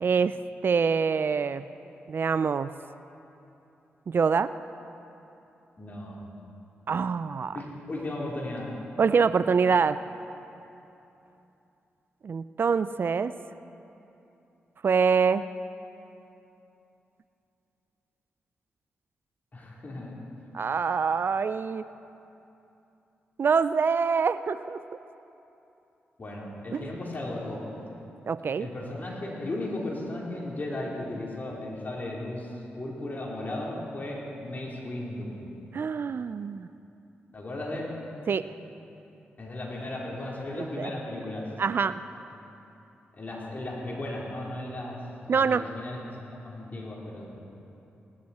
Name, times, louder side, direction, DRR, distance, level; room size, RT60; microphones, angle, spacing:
voice 1, 0.0-1.7 2.1-2.7 4.1-4.5 6.9-7.6 9.0-10.0 12.2-13.3 14.8-15.5 20.5-21.8 23.4-24.8 26.7-26.9 28.3-28.7 35.7-36.7 38.3-38.5 40.6-40.9 41.6-42.0 45.3-45.7, right 5 dB, 55° right, 14 dB, 0.4 m, -25 dB
voice 2, 5.8-6.2 7.5-8.7 19.5-20.1 26.2-27.6 28.6-35.4 37.3-37.9 39.4-41.5 43.1-47.3, left 1 dB, 40° left, -3 dB, 3.6 m, -36 dB
18.5 x 12.5 x 4.2 m, 2.9 s
supercardioid pair, 50°, 4 cm